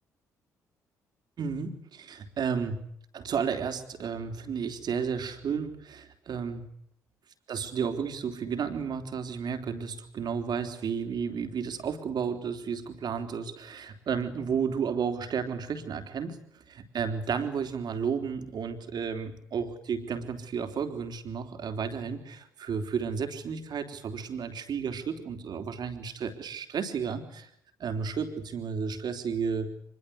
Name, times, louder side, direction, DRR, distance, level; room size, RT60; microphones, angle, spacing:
voice 1, 1.4-2.8 3.1-6.7 7.5-16.4 16.7-27.5 27.8-29.7, right 6 dB, 55° right, 7 dB, 3.5 m, -32 dB
25.0 x 21.5 x 8.3 m, 0.69 s
hypercardioid pair, 45°, 8 cm